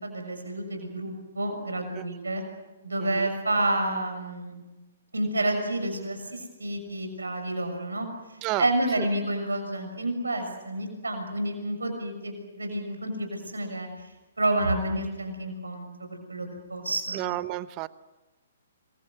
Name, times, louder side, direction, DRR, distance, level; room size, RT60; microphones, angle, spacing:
voice 1, 0.0-2.4 2.8-4.5 5.1-13.9 14.4-17.2, right 1 dB, 85° right, 5 dB, 6.5 m, -29 dB
voice 2, 17.1-17.9, right 18 dB, 30° right, 17 dB, 0.8 m, -31 dB
26.0 x 23.0 x 8.1 m, 1.1 s
figure-of-eight pair, 125°, 0 cm